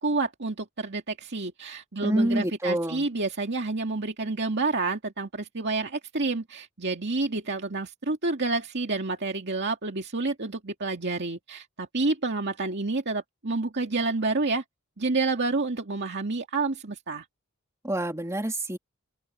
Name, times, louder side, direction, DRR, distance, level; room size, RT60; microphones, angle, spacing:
voice 1, 0.0-14.6 15.0-17.2, right 3 dB, 55° right, 2.2 m, -29 dB
voice 2, 2.0-3.1 17.8-18.8, right 1 dB, 15° right, 2.6 m, -27 dB
open air
head